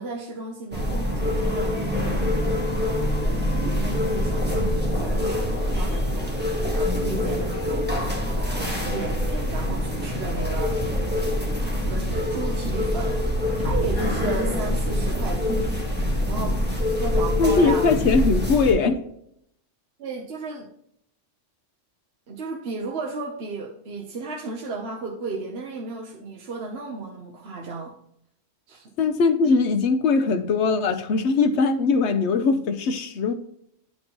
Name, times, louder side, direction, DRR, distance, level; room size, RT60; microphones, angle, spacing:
voice 1, 0.0-2.5 3.2-7.9 8.5-10.8 11.6-13.3 13.5-15.5 16.3-17.9 20.0-20.7 22.3-27.9 28.7-28.9, right 4 dB, 60° right, 1.0 m, -34 dB
sound 1, 0.7-18.7, left 1 dB, 10° right, 1.1 m, -25 dB
voice 2, 17.4-19.0 29.0-33.3, left 4 dB, 70° left, 0.9 m, -21 dB
10.0 x 4.4 x 2.9 m
omnidirectional pair, 1.2 m